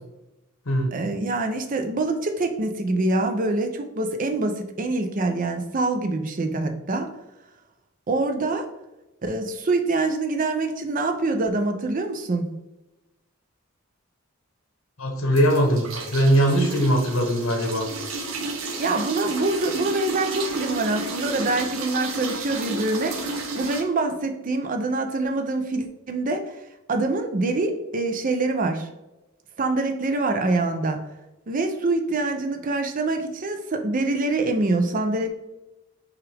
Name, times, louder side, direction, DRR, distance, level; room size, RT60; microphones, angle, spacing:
voice 1, 0.9-7.1 8.1-8.7 9.2-12.5 18.8-26.5 26.9-28.9 29.6-31.0 31.5-35.3, right 2 dB, 40° right, 6 dB, 0.5 m, -25 dB
voice 2, 15.0-17.9, equal, 70° left, 2 dB, 1.0 m, -21 dB
sound 1, 15.3-23.8, right 3 dB, 75° right, 0.8 m, -32 dB
5.8 x 2.5 x 3.3 m, 1.0 s
head